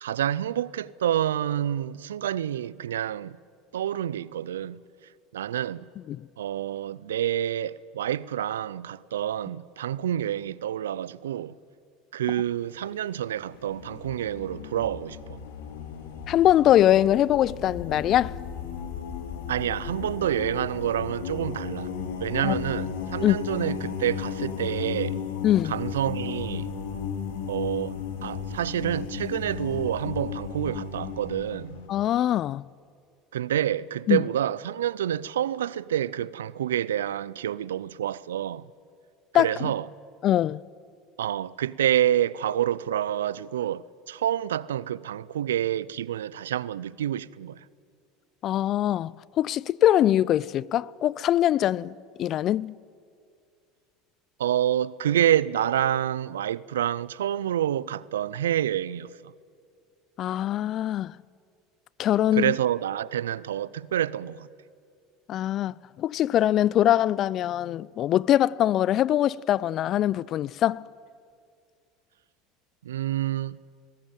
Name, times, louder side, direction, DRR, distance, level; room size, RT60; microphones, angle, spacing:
voice 1, 0.0-3.4 3.7-4.8 5.3-5.8 6.4-11.5 12.1-15.4 19.5-21.9 22.2-25.2 25.6-26.7 27.5-28.0 28.2-31.8 33.3-38.7 39.4-39.9 41.2-47.6 54.4-59.2 62.3-64.5 72.8-73.6, right 11 dB, 85° right, 0.5 m, -28 dB
sound 1, 12.5-12.8 13.4-31.9, left 7 dB, 75° left, 2.3 m, -35 dB
voice 2, 16.3-18.3 22.4-22.5 23.2-23.4 25.4-25.7 31.9-32.6 34.1-34.2 39.3-39.5 40.2-40.6 48.4-51.9 52.2-52.7 60.2-61.1 62.0-62.5 65.3-70.8, left 12 dB, 50° left, 0.5 m, -22 dB
20.5 x 18.0 x 9.0 m
hypercardioid pair, 85°, 0 cm